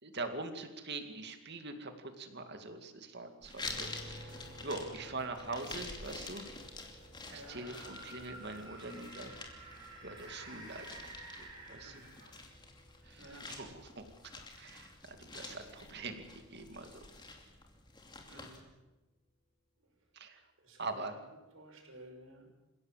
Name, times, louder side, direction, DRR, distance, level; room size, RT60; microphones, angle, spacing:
voice 1, 0.0-6.4 7.3-9.3 10.0-11.1 11.4-12.3 13.1-14.1 14.6-14.9 15.2-17.0 20.1-20.4 20.8-21.1, right 3 dB, 50° right, 6 dB, 2.4 m, -43 dB
sound 1, 3.4-18.6, left 3 dB, 20° left, 2.8 m, -48 dB
sound 2, 3.7-17.4, right 1 dB, ahead, 5.4 m, -57 dB
voice 2, 7.3-7.6 11.8-12.1 13.2-13.4 18.3-18.6 20.6-20.8 21.5-22.5, right 1 dB, 65° right, 2 dB, 5.8 m, -53 dB
sound 3, 7.4-12.6, right 2 dB, 20° right, 6.2 m, -51 dB
28.0 x 16.5 x 7.5 m, 1.1 s
head